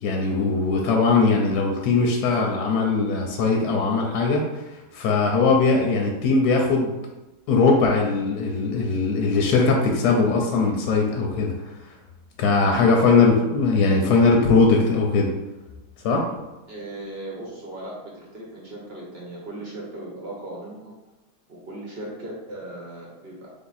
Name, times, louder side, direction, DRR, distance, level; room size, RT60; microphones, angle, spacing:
voice 1, 0.0-6.9 7.5-11.5 11.8-11.9 12.4-15.3 16.0-16.3, left 4 dB, 75° left, 1 dB, 1.0 m, -20 dB
voice 2, 16.7-20.9 21.5-23.5, right 1 dB, 50° right, -3 dB, 0.8 m, -37 dB
3.5 x 2.7 x 3.9 m, 1.0 s
omnidirectional pair, 1.8 m